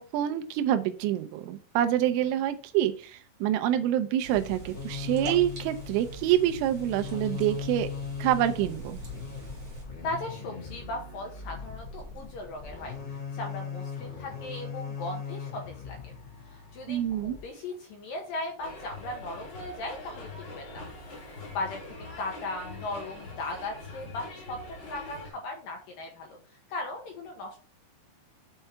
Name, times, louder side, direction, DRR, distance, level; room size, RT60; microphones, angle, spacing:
voice 1, 0.0-7.9 8.2-9.0 16.9-17.4, right 11 dB, 90° right, 8 dB, 3.2 m, -27 dB
sound 1, 4.2-9.8, right 1 dB, 35° right, 2.5 m, -43 dB
sound 2, 4.4-17.4, left 6 dB, 60° left, 0.7 m, -39 dB
voice 2, 10.0-12.9 13.3-16.1 16.5-20.9 21.2-26.4 26.7-27.6, left 2 dB, 75° left, 1 dB, 2.0 m, -38 dB
sound 3, 18.6-25.3, left 2 dB, 30° left, 2.6 m, -43 dB
6.9 x 5.4 x 4.5 m, 0.39 s
omnidirectional pair, 5.5 m